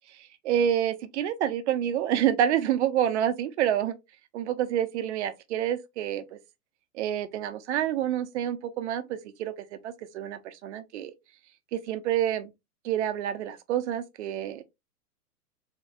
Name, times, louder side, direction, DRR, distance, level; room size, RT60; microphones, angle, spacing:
voice 1, 0.1-4.0 4.3-6.4 6.9-11.1 11.7-12.5 12.8-14.6, right 10 dB, 50° right, 0.8 m, -28 dB
3.8 x 3.6 x 2.3 m
figure-of-eight pair, 110°, 46 cm